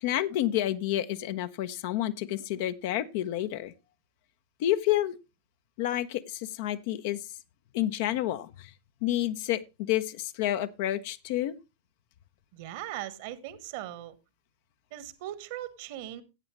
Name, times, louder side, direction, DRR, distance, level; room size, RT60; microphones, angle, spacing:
voice 1, 0.0-3.7 4.6-5.1 5.8-7.2 7.7-8.7 9.0-11.5, left 13 dB, 50° left, 0.8 m, -29 dB
voice 2, 12.5-14.1 14.9-16.2, right 13 dB, 50° right, 1.3 m, -39 dB
14.5 x 8.8 x 3.1 m
figure-of-eight pair, 90°, 0 cm